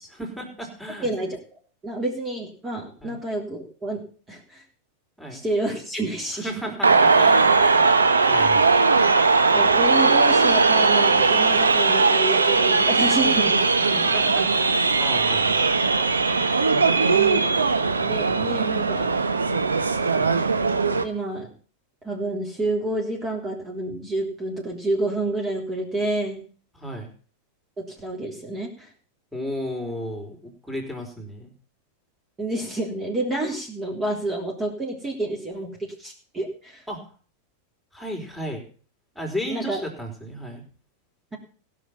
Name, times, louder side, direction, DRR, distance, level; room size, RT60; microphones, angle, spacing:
voice 1, 0.0-1.1 3.0-3.2 5.2-5.4 6.3-8.7 13.9-15.6 18.4-18.6 20.1-20.3 26.7-27.1 29.3-31.5 36.9-37.0 37.9-38.7 39.2-40.6, equal, ahead, 2 dB, 4.2 m, -34 dB
voice 2, 1.0-1.4 1.8-4.0 4.3-4.6 5.3-6.7 9.5-14.0 17.1-19.1 21.0-21.5 22.0-26.4 27.8-28.9 32.4-36.8 39.5-39.8, right 2 dB, 20° right, -1 dB, 3.6 m, -29 dB
sound 1, 6.8-21.0, right 4 dB, 90° right, 1.2 m, -19 dB
16.0 x 6.6 x 7.2 m, 0.40 s
hypercardioid pair, 95°, 0 cm